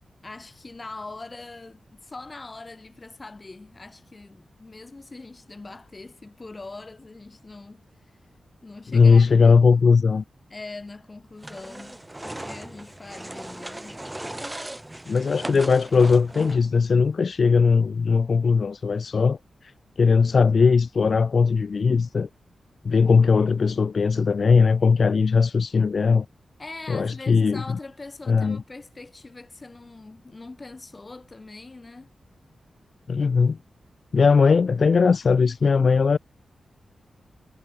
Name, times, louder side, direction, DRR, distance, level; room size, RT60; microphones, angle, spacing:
voice 1, 0.2-7.9 8.6-9.8 10.5-14.0 26.6-32.1, left 3 dB, 25° left, 7.1 m, -42 dB
voice 2, 8.9-10.2 15.1-19.7 20.0-22.3 22.8-26.2 26.9-27.6 28.3-28.6 33.1-33.6 34.1-36.2, left 5 dB, 45° left, 1.0 m, -19 dB
sound 1, 11.4-16.8, right 1 dB, 10° right, 5.2 m, -38 dB
wide cardioid pair, 160°, 0 cm